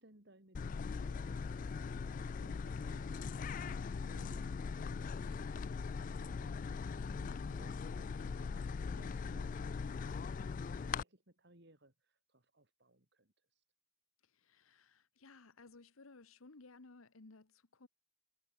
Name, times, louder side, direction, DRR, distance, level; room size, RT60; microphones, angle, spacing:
voice 1, 0.0-2.0 2.4-10.4 10.8-13.6, right 1 dB, 55° right, 3.6 m, -64 dB
sound 1, 0.5-11.0, left 5 dB, 40° left, 0.3 m, -40 dB
voice 2, 14.2-17.9, left 3 dB, 85° left, 1.2 m, -59 dB
head